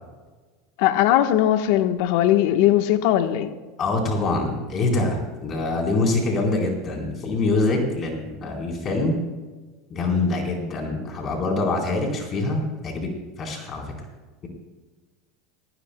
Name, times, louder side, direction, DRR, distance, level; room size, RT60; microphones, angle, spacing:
voice 1, 0.8-3.5, left 12 dB, 70° left, 8 dB, 1.2 m, -19 dB
voice 2, 3.8-9.2 9.9-13.1 13.4-13.8, left 2 dB, 40° left, 0 dB, 4.1 m, -24 dB
19.0 x 16.0 x 2.3 m, 1.3 s
hypercardioid pair, 95°, 0 cm